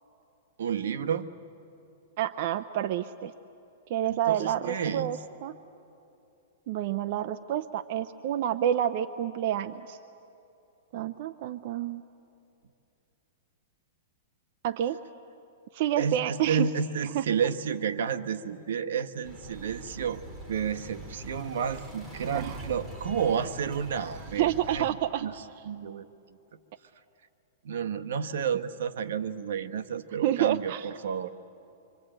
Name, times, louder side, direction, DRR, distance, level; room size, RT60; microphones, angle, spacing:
voice 1, 0.6-1.3 4.1-5.2 16.0-20.2 20.5-24.9 25.2-25.3 25.6-26.1 27.6-31.3, right 7 dB, 75° right, 8 dB, 1.1 m, -31 dB
voice 2, 2.2-3.3 3.9-5.6 6.7-10.0 10.9-12.0 14.6-15.0 15.7-16.7 17.1-17.2 22.3-22.6 24.4-25.3 30.2-30.9, right 11 dB, 45° right, 9 dB, 0.6 m, -29 dB
sound 1, 19.2-24.9, right 1 dB, 15° right, 2.2 m, -43 dB
25.5 x 25.0 x 8.9 m, 2.7 s
supercardioid pair, 160°, 0 cm